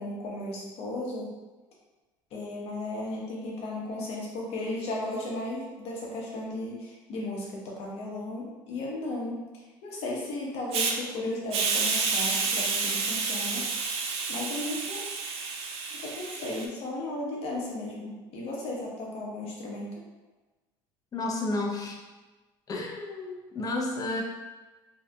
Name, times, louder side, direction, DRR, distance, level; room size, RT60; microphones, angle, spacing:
voice 1, 0.0-1.3 2.3-9.4 9.8-13.6 14.3-15.1 15.9-19.9, left 2 dB, 60° left, -3 dB, 0.8 m, -35 dB
Hiss, 10.7-10.9 11.5-16.7, right 4 dB, 60° right, 0.4 m, -29 dB
voice 2, 21.1-22.0 22.7-24.2, left 2 dB, 30° left, 1 dB, 0.5 m, -31 dB
2.7 x 2.4 x 2.2 m, 1.2 s
supercardioid pair, 85°, 11 cm